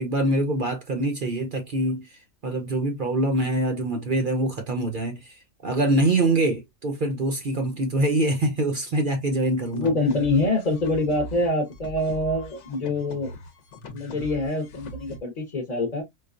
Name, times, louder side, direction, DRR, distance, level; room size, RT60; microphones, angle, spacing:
voice 1, 0.0-9.9, right 1 dB, 50° right, 0.6 m, -24 dB
sound 1, 9.6-15.2, equal, 60° left, 1.0 m, -41 dB
voice 2, 9.7-13.3 13.9-16.0, left 2 dB, 35° left, 0.8 m, -25 dB
4.7 x 2.3 x 2.4 m
omnidirectional pair, 1.6 m